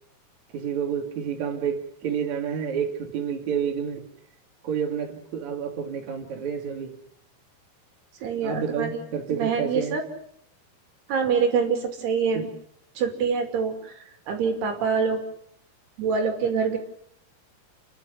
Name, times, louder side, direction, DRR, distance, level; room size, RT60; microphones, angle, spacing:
voice 1, 0.5-4.0 4.6-7.0 8.4-10.0 12.3-12.5, right 7 dB, 45° right, 2 dB, 3.5 m, -29 dB
voice 2, 8.2-9.0 9.3-10.0 11.1-12.5 13.0-14.0 14.3-15.2 16.0-16.8, right 5 dB, 70° right, 4 dB, 4.6 m, -25 dB
30.0 x 11.5 x 9.5 m, 0.70 s
omnidirectional pair, 4.9 m